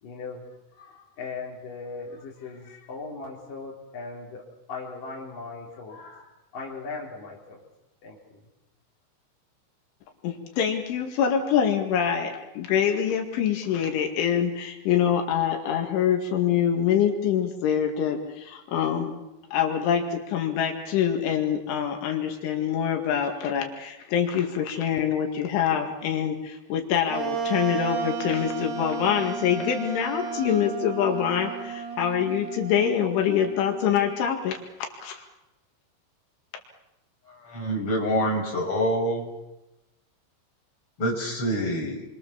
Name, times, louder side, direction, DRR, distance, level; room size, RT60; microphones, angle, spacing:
voice 1, 0.0-7.6 8.0-8.4, left 4 dB, 45° left, -3 dB, 5.1 m, -39 dB
voice 2, 10.2-19.2 19.5-34.6 35.0-35.2, left 8 dB, 80° left, 3 dB, 4.5 m, -25 dB
Wind instrument woodwind instrument, 27.1-34.5, right 6 dB, 60° right, 4.3 m, -34 dB
voice 3, 37.4-39.3 41.0-42.0, equal, 30° left, -1 dB, 7.2 m, -26 dB
28.5 x 24.5 x 7.3 m, 0.97 s
omnidirectional pair, 5.4 m